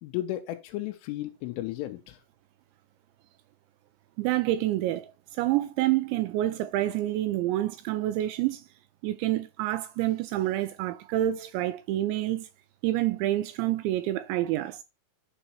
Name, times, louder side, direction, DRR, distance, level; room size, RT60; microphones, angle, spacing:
voice 1, 0.0-2.2, left 15 dB, 90° left, 3.3 m, -34 dB
voice 2, 4.2-8.6 9.0-12.5 12.8-14.8, right 14 dB, 85° right, 2.6 m, -28 dB
11.5 x 4.0 x 4.5 m
omnidirectional pair, 5.6 m